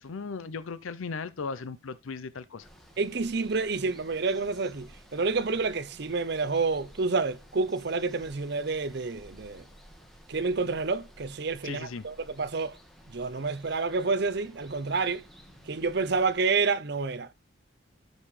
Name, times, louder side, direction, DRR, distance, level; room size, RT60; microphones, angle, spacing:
voice 1, 0.0-2.7 11.6-12.0, left 4 dB, 80° left, 0.6 m, -37 dB
Water, 2.6-16.4, equal, ahead, 1.6 m, -54 dB
voice 2, 3.0-9.6 10.3-12.8 13.1-15.2 15.7-17.3, right 4 dB, 50° right, 0.6 m, -29 dB
13.0 x 5.5 x 3.2 m
head